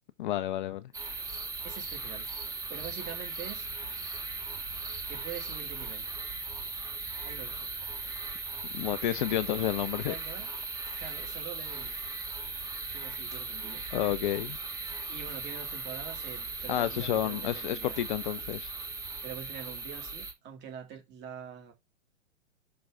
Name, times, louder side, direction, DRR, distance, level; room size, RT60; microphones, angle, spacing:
voice 1, 0.2-0.8 8.7-10.1 13.9-14.6 16.7-18.7, left 12 dB, 40° left, 0.6 m, -30 dB
sound 1, 0.9-20.3, right 3 dB, 10° right, 1.3 m, -38 dB
voice 2, 1.6-2.3 2.7-3.7 5.1-6.1 7.2-7.7 9.9-10.5 11.0-12.0 12.9-13.9 15.1-18.0 19.2-21.7, right 8 dB, 25° right, 2.5 m, -44 dB
6.0 x 3.9 x 4.9 m
figure-of-eight pair, 110°, 39 cm